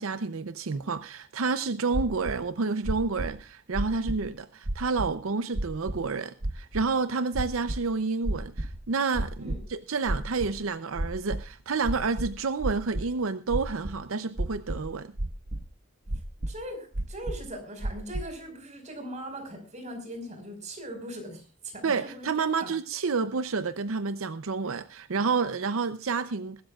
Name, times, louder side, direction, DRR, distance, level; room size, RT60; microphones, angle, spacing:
voice 1, 0.0-15.1 21.8-26.6, right 4 dB, 85° right, 0.6 m, -29 dB
sound 1, 1.9-2.3 2.8-3.3 3.7-4.3 4.6-5.1 5.5-6.0 6.4-6.8 7.3-7.8 8.2-8.8 9.1-9.6 10.1-10.6 10.9-11.4 11.8-13.0 13.5-13.9 14.4-14.9 15.2-15.6 16.1-16.5 16.9-17.5 17.8-18.2, right 1 dB, 65° right, 1.3 m, -31 dB
voice 2, 16.5-22.3 22.6-22.7, right 1 dB, 35° right, 5.1 m, -40 dB
21.5 x 12.5 x 2.4 m
head